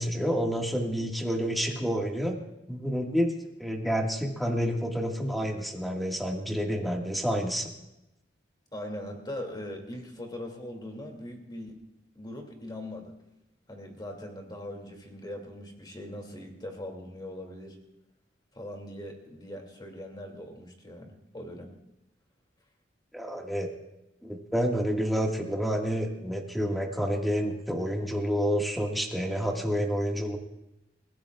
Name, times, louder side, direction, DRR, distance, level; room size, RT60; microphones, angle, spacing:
voice 1, 0.0-2.4 2.7-3.3 3.6-7.7 23.1-23.7 24.2-30.4, equal, ahead, 0 dB, 1.9 m, -29 dB
voice 2, 8.7-11.8 12.1-13.1 13.7-17.8 18.5-21.7, left 1 dB, 25° left, 2 dB, 2.6 m, -40 dB
29.5 x 15.5 x 2.5 m, 0.91 s
head